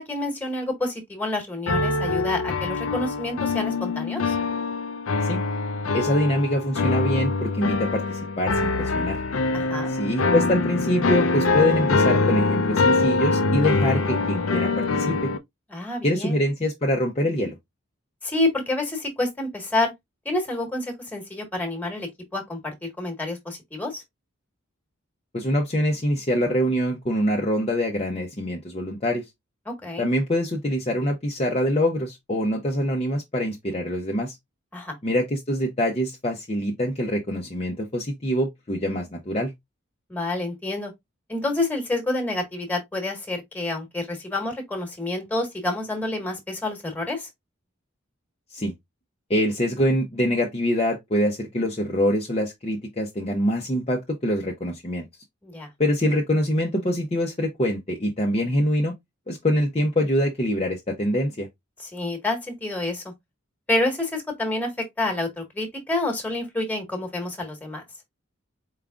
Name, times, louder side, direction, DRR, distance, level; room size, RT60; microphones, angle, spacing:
voice 1, 0.0-4.3 9.5-9.9 15.7-16.4 18.2-19.9 20.2-24.0 29.7-30.1 34.7-35.0 40.1-40.9 41.3-47.3 55.4-55.7 61.8-63.0 63.7-67.8, left 2 dB, 10° left, 1.4 m, -28 dB
sound 1, 1.7-15.4, left 3 dB, 80° left, 0.6 m, -24 dB
voice 2, 5.9-9.2 9.9-15.3 16.0-17.6 25.3-29.2 30.0-34.4 35.0-39.5 48.5-48.7 49.3-55.1 55.8-58.9 59.3-61.5, equal, 30° left, 0.7 m, -24 dB
4.8 x 3.6 x 2.4 m
head